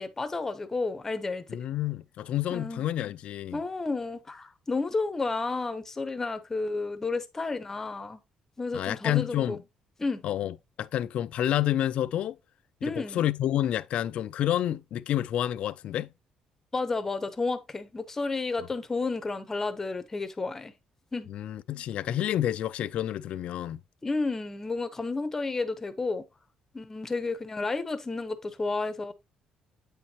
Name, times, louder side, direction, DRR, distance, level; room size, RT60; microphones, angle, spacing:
voice 1, 0.0-1.6 2.5-2.8 3.5-8.2 8.6-9.6 10.0-10.2 12.8-13.2 16.7-20.7 21.1-21.3 24.0-26.2 26.7-29.1, left 3 dB, 20° left, 0.7 m, -31 dB
voice 2, 1.5-3.6 8.7-9.6 10.2-12.4 12.8-16.1 21.3-23.8, left 12 dB, 60° left, 0.3 m, -29 dB
8.6 x 4.4 x 2.8 m
cardioid pair, 140°, 2 cm